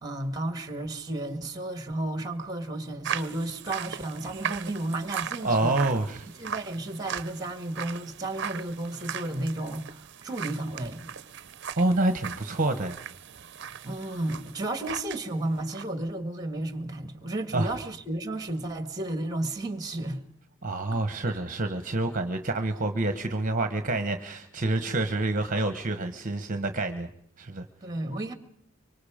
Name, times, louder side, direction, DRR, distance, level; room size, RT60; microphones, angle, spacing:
voice 1, 0.0-5.8 6.4-11.1 13.8-20.2 27.8-28.3, right 1 dB, 20° right, 1.9 m, -33 dB
sound 1, 3.0-15.2 15.5-15.8, right 8 dB, 55° right, 0.8 m, -38 dB
voice 2, 5.4-6.3 11.8-13.0 17.5-17.7 20.6-27.1 27.4-27.6, right 2 dB, 40° right, 1.2 m, -27 dB
25.0 x 24.0 x 5.1 m
head